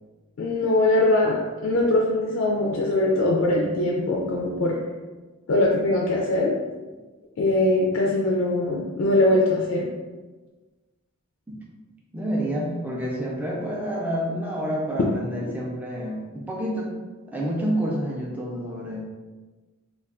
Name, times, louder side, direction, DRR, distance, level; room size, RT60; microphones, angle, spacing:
voice 1, 0.4-4.8 5.5-6.5 7.4-9.9, left 2 dB, 60° left, -2 dB, 0.4 m, -22 dB
voice 2, 12.1-16.9 17.3-19.0, equal, 5° right, -3 dB, 0.4 m, -28 dB
2.3 x 2.2 x 3.5 m, 1.3 s
head